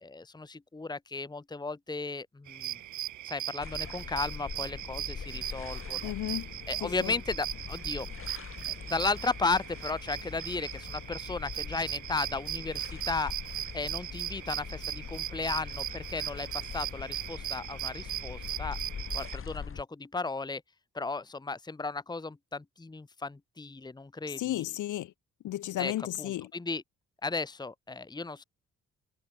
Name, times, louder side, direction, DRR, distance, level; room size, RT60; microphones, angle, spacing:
voice 1, 0.0-2.8 3.3-6.1 6.7-8.1 8.7-13.3 13.7-18.8 19.1-20.6 20.9-24.6 25.8-25.9 26.2-26.8 27.2-28.4, left 3 dB, 15° left, 1.3 m, -35 dB
sound 1, 2.5-19.4, right 13 dB, 75° right, 2.2 m, -39 dB
sound 2, 3.6-19.8, left 6 dB, 45° left, 5.9 m, -42 dB
voice 2, 6.0-6.5 6.8-7.1 24.3-25.1 25.4-26.5, left 14 dB, 80° left, 1.9 m, -34 dB
cardioid pair, 90°, 30 cm